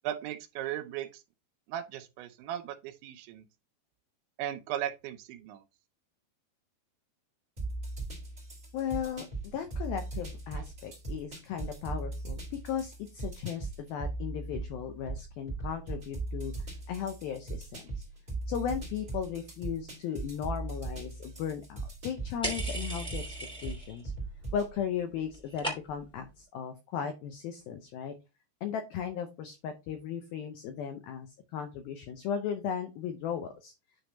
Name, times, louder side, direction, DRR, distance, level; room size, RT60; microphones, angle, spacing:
voice 1, 0.0-1.2 1.7-3.5 4.4-5.6 10.5-10.6, right 11 dB, 80° right, 3.1 m, -37 dB
sound 1, 7.6-24.7, right 2 dB, 20° right, 2.1 m, -39 dB
voice 2, 8.7-9.3 9.5-16.5 16.9-18.0 18.5-23.3 23.6-24.1 24.5-28.1 28.6-33.7, left 8 dB, 85° left, 2.1 m, -36 dB
sound 2, 22.4-24.0 24.3-24.8 25.1-26.2, right 1 dB, 5° left, 0.6 m, -37 dB
9.5 x 3.4 x 4.1 m
omnidirectional pair, 5.3 m